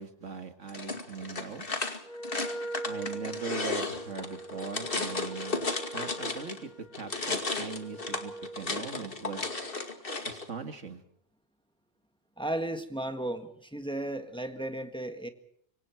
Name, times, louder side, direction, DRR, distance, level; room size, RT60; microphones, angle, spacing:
voice 1, 0.0-1.7 2.8-6.7 7.0-9.4 10.3-11.0, right 5 dB, 85° right, 7 dB, 2.3 m, -40 dB
sound 1, 0.7-6.6 6.9-10.5, left 3 dB, 50° left, 2.4 m, -34 dB
Wind instrument woodwind instrument, 2.0-8.7, right 2 dB, 40° right, 3.2 m, -42 dB
voice 2, 12.4-15.3, right 1 dB, 5° left, 7 dB, 1.6 m, -34 dB
26.0 x 24.5 x 4.7 m, 0.67 s
omnidirectional pair, 1.2 m